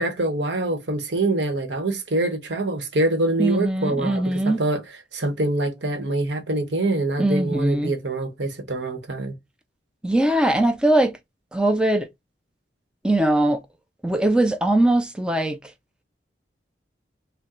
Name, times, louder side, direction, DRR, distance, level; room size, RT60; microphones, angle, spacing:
voice 1, 0.0-4.8 5.1-9.3, right 2 dB, 85° right, 1.1 m, -25 dB
voice 2, 3.4-4.6 7.2-7.9 10.0-11.1 11.5-12.1 13.0-13.6 14.0-15.6, right 1 dB, 5° right, 0.4 m, -20 dB
3.7 x 2.2 x 4.1 m
head